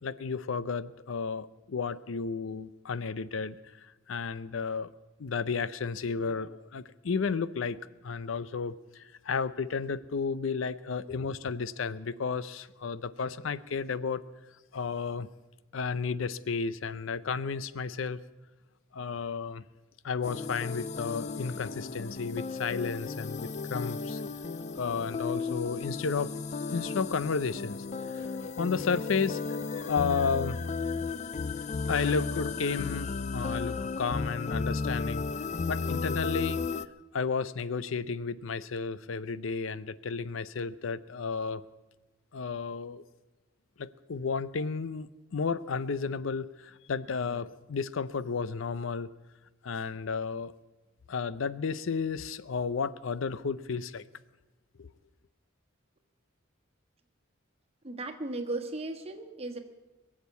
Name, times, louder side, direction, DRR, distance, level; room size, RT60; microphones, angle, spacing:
voice 1, 0.0-4.9 5.2-7.8 8.0-14.2 14.7-15.3 15.7-18.2 18.9-19.6 20.0-24.2 24.8-26.3 26.7-27.8 28.2-29.4 29.7-30.6 30.9-31.2 31.9-35.3 35.7-36.6 37.1-41.6 42.3-43.0 43.8-49.1 49.6-50.5 51.1-54.1 54.8-54.9, left 5 dB, 80° left, 16 dB, 0.6 m, -32 dB
sound 1, 20.2-36.9, left 4 dB, 35° left, 0.4 m, -34 dB
voice 2, 57.8-59.6, right 2 dB, 30° right, 3 dB, 1.5 m, -36 dB
22.5 x 7.5 x 8.2 m, 1.1 s
head